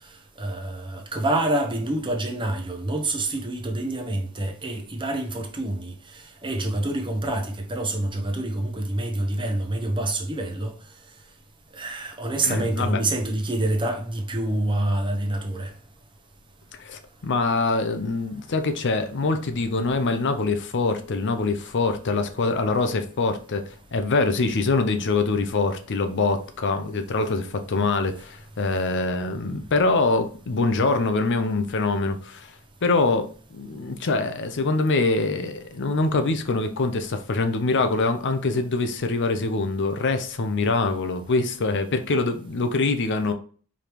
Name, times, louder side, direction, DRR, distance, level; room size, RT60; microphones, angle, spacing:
voice 1, 0.4-5.9 6.4-10.7 11.7-15.7, right 1 dB, 20° right, 0.8 m, -27 dB
voice 2, 12.4-13.0 16.8-32.5 32.8-33.3 33.5-43.3, left 3 dB, 55° left, 0.6 m, -24 dB
4.9 x 3.4 x 3.0 m
head